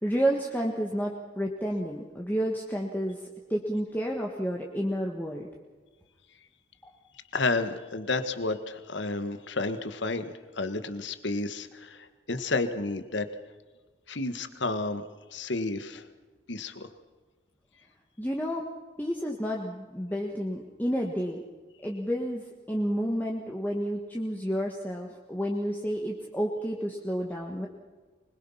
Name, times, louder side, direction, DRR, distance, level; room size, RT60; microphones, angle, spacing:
voice 1, 0.0-3.2 3.5-5.5 18.2-18.6 19.0-21.4 21.8-27.7, equal, 10° left, -1 dB, 1.5 m, -30 dB
voice 2, 7.3-13.2 14.1-15.0 15.3-16.0 16.5-16.9, left 3 dB, 70° left, 10 dB, 1.6 m, -31 dB
24.5 x 21.5 x 5.8 m, 1.3 s
head